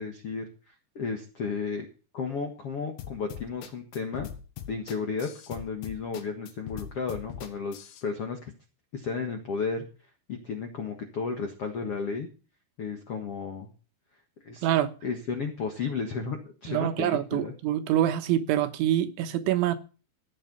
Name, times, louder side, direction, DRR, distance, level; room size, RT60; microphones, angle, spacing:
voice 1, 0.0-1.9 2.1-4.3 4.7-7.7 8.0-8.5 8.9-9.8 10.3-12.3 12.8-13.7 14.4-14.7 15.0-17.5, left 5 dB, 70° left, 1.4 m, -33 dB
sound 1, 3.0-8.0, left 10 dB, 85° left, 3.9 m, -41 dB
voice 2, 16.7-19.8, right 12 dB, 80° right, 3.4 m, -25 dB
15.0 x 8.7 x 5.5 m
omnidirectional pair, 5.4 m